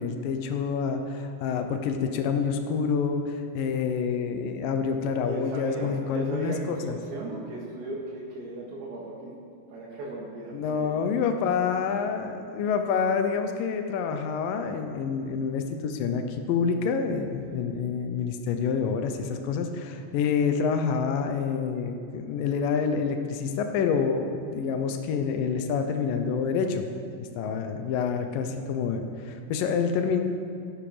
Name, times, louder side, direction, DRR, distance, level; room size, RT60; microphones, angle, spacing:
voice 1, 0.0-7.0 10.5-26.8 27.2-30.2, left 6 dB, 85° left, 6 dB, 1.9 m, -27 dB
voice 2, 5.2-9.4 9.7-11.0 17.5-17.7, right 2 dB, 70° right, -6 dB, 4.0 m, -37 dB
17.5 x 11.5 x 5.0 m, 2.5 s
omnidirectional pair, 5.3 m